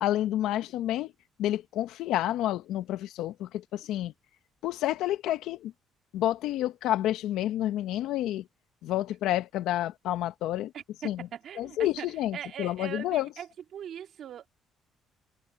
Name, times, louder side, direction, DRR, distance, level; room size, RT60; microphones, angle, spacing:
voice 1, 0.0-1.1 1.4-4.1 4.6-5.7 6.1-8.4 8.8-10.7 11.0-11.3 11.6-13.3, left 13 dB, 80° left, 1.1 m, -29 dB
voice 2, 10.7-14.5, right 9 dB, 60° right, 2.7 m, -41 dB
cardioid pair, 85°, 0 cm